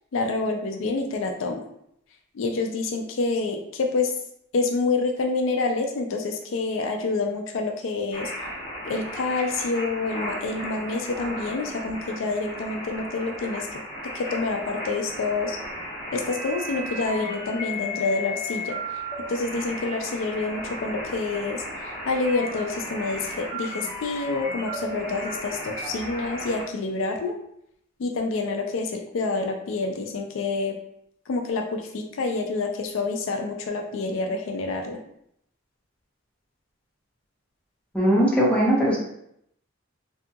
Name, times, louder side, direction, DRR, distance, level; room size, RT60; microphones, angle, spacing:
voice 1, 0.1-1.7 2.3-4.1 4.5-8.3 8.9-13.8 14.1-15.6 16.1-18.8 19.3-27.4 28.0-30.8 31.3-35.0, left 3 dB, 75° left, 4 dB, 0.4 m, -27 dB
sound 1, 8.1-26.6, equal, 25° left, 1.1 m, -35 dB
voice 2, 37.9-39.0, equal, 5° left, -6 dB, 0.8 m, -19 dB
2.7 x 2.6 x 2.3 m, 0.73 s
head